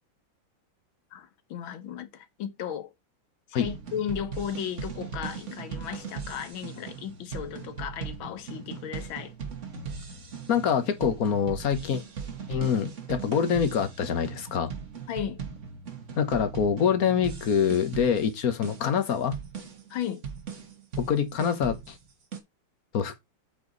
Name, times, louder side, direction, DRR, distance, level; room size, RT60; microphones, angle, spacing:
voice 1, 1.1-2.9 3.5-9.3 15.1-15.4 19.9-20.2, left 9 dB, 80° left, 1.8 m, -35 dB
sound 1, 3.6-22.4, right 6 dB, 40° right, 1.6 m, -39 dB
voice 2, 10.5-12.0 12.5-14.7 16.2-19.4 21.0-22.0 22.9-23.2, left 7 dB, 50° left, 1.5 m, -25 dB
8.3 x 4.6 x 4.0 m
omnidirectional pair, 2.2 m